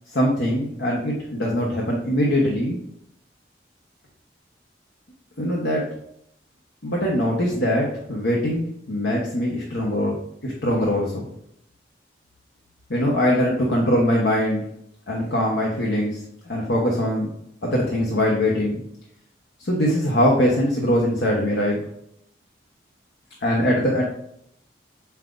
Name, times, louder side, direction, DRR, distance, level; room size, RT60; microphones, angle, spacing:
voice 1, 0.1-2.8 5.4-5.8 6.8-10.1 10.4-11.2 12.9-14.7 15.1-17.3 17.6-18.8 19.6-21.9 23.4-24.0, equal, 75° left, -3 dB, 1.1 m, -22 dB
7.2 x 5.7 x 2.6 m, 0.74 s
head